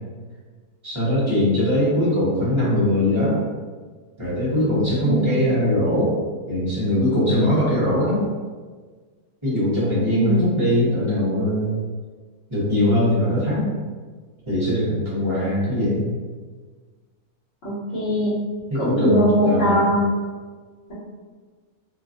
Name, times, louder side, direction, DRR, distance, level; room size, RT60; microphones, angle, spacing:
voice 1, 0.8-3.4 4.2-6.1 6.5-8.2 9.4-11.8 12.5-13.7 14.4-16.0 18.7-19.8, left 1 dB, 20° right, -10 dB, 1.1 m, -21 dB
voice 2, 5.0-5.4 10.1-10.6 17.6-18.4 18.8-20.0, equal, 45° left, -10 dB, 1.2 m, -21 dB
2.9 x 2.3 x 2.6 m, 1.4 s
omnidirectional pair, 1.6 m